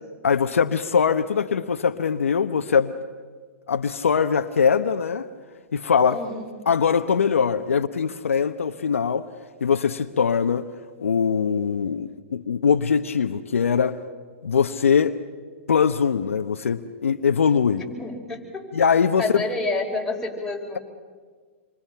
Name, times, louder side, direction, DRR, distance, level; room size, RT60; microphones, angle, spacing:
voice 1, 0.2-2.9 3.7-5.3 5.7-6.2 6.7-9.2 9.6-10.7 11.0-14.0 14.4-15.2 15.7-17.8 18.7-19.4, left 6 dB, 85° left, 8 dB, 1.0 m, -22 dB
voice 2, 6.1-6.5 17.8-18.6 19.2-20.8, left 3 dB, 5° left, -2 dB, 5.2 m, -29 dB
27.5 x 24.0 x 5.9 m, 1.6 s
hypercardioid pair, 125°, 7 cm